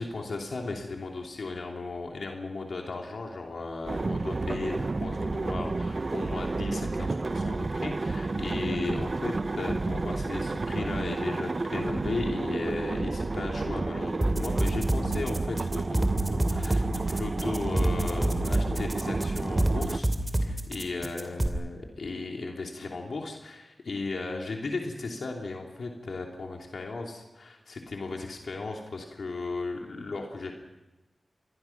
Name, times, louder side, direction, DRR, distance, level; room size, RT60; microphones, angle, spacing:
voice 1, 0.0-20.1 20.4-30.5, left 3 dB, 80° left, 1 dB, 3.0 m, -36 dB
sound 1, 3.8-20.0, right 3 dB, 50° right, 0.7 m, -31 dB
sound 2, 14.2-21.5, right 1 dB, 20° right, 2.8 m, -27 dB
27.0 x 21.0 x 5.9 m, 1.0 s
wide cardioid pair, 75°, 0 cm